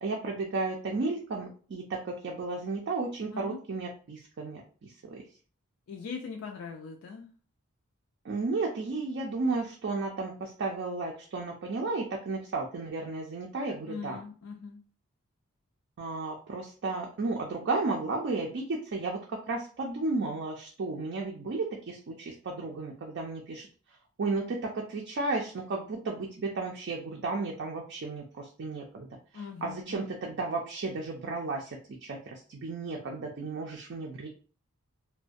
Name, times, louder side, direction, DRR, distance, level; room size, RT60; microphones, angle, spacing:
voice 1, 0.0-5.2 8.2-14.2 16.0-23.7 24.2-29.1 29.3-34.3, right 3 dB, 50° right, 0 dB, 0.4 m, -33 dB
voice 2, 5.9-7.3 13.9-14.8 29.3-30.1, left 5 dB, 70° left, 2 dB, 0.3 m, -41 dB
2.3 x 2.1 x 2.5 m, 0.39 s
head